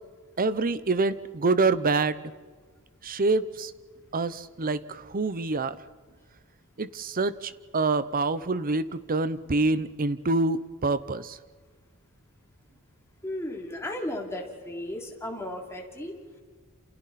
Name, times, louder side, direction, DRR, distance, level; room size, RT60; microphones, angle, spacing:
voice 1, 0.4-2.3 3.0-3.7 4.1-5.8 6.8-11.4, right 3 dB, 40° right, 15 dB, 0.8 m, -26 dB
voice 2, 13.2-16.4, left 1 dB, 10° left, -1 dB, 3.2 m, -35 dB
28.5 x 28.5 x 4.3 m, 1.5 s
head